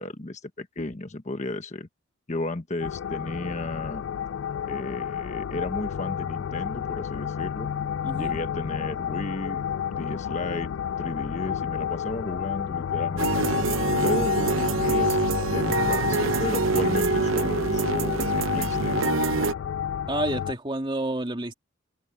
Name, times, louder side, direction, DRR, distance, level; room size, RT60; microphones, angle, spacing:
voice 1, 0.0-1.9 2.3-4.0 4.6-7.7 8.1-9.6 9.9-10.7 11.0-13.6 14.0-15.2 15.5-19.2, left 2 dB, 35° left, 1.2 m, -34 dB
sound 1, 2.8-20.5, left 9 dB, 65° left, 0.3 m, -30 dB
voice 2, 8.0-8.4 20.1-21.5, right 1 dB, 25° right, 2.6 m, -29 dB
sound 2, 13.2-19.5, right 4 dB, 85° right, 0.8 m, -25 dB
head